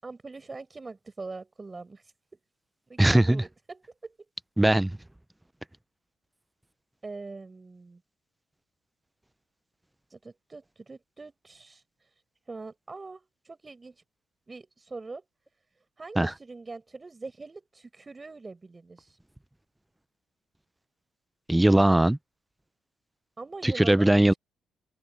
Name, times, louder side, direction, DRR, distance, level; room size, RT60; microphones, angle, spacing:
voice 1, 0.0-2.4 2.9-4.2 7.0-8.0 10.1-12.1 12.5-14.0 14.5-15.2 16.0-19.2 23.4-24.4, right 3 dB, 25° right, 7.4 m, -43 dB
voice 2, 3.0-3.4 4.6-5.0 16.2-16.3 21.5-22.2 23.6-24.3, right 1 dB, 10° right, 0.6 m, -20 dB
cardioid pair, 90°, 0 cm